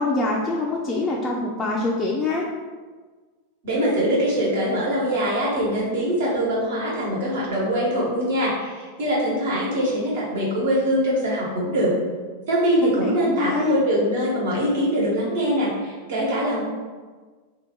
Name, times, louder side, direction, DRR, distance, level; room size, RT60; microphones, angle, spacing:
voice 1, 0.0-2.4 12.9-13.8, left 3 dB, 20° left, -3 dB, 0.4 m, -25 dB
voice 2, 3.6-11.9 12.5-16.6, equal, 55° right, -5 dB, 1.1 m, -23 dB
2.6 x 2.4 x 3.6 m, 1.4 s
figure-of-eight pair, 90°, 0 cm